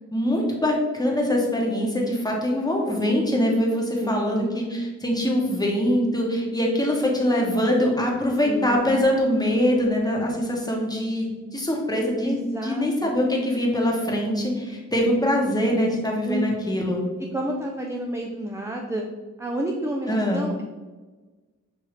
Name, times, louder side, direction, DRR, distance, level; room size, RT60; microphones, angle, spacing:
voice 1, 0.1-12.4 12.6-17.0 20.1-20.4, left 1 dB, 15° left, -2 dB, 1.0 m, -23 dB
voice 2, 4.0-4.5 8.4-8.8 12.2-13.1 16.2-16.8 17.3-19.0 19.4-20.6, right 1 dB, 10° right, 1 dB, 0.4 m, -30 dB
6.5 x 2.7 x 3.0 m, 1.3 s
wide cardioid pair, 95°, 30 cm